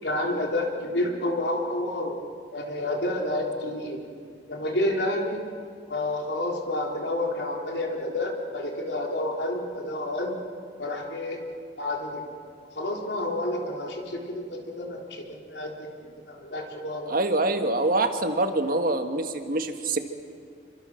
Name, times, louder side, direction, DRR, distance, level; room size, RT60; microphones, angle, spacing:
voice 1, 0.0-2.2 2.5-4.0 4.5-5.4 5.9-10.3 10.8-11.4 11.8-12.2 12.7-17.1, left 1 dB, 70° left, 1 dB, 3.9 m, -29 dB
voice 2, 17.1-20.0, right 2 dB, 55° right, 6 dB, 1.8 m, -25 dB
27.0 x 25.0 x 6.5 m, 2.2 s
head